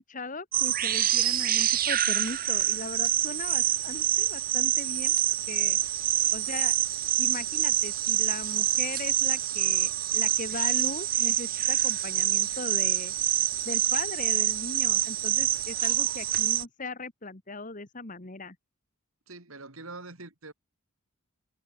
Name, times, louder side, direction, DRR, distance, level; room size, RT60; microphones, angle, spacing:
voice 1, 0.1-5.2 5.5-5.8 6.3-6.8 7.2-13.1 13.7-18.6, left 3 dB, 35° left, 1.7 m, -38 dB
sound 1, 0.5-16.6, right 13 dB, 40° right, 1.2 m, -26 dB
voice 2, 19.3-20.5, right 3 dB, 75° right, 3.4 m, -44 dB
head